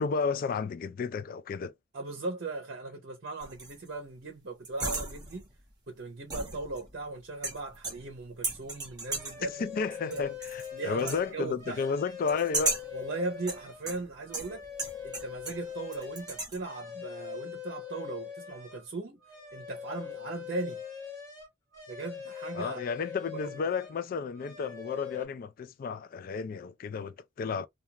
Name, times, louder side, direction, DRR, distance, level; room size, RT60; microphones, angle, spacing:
voice 1, 0.0-1.7 9.4-12.8 22.5-27.7, left 5 dB, 45° left, 0.3 m, -32 dB
voice 2, 1.9-5.4 5.9-9.6 10.0-10.2 10.7-11.9 12.9-14.6 15.0-19.2 19.5-20.8 21.9-22.8 23.3-23.6, right 3 dB, 55° right, 0.6 m, -38 dB
sound 1, 3.4-3.9 4.6-5.5 6.3-7.0 7.4-8.2 8.4-9.5 10.1-10.7 11.0-11.3 12.3-13.0 13.5-15.7 15.9-16.6, right 3 dB, 20° right, 0.9 m, -35 dB
sound 2, 9.1-13.9 14.2-18.9 19.2-24.0 24.3-25.3, left 8 dB, 20° left, 1.1 m, -43 dB
2.4 x 2.3 x 2.8 m
head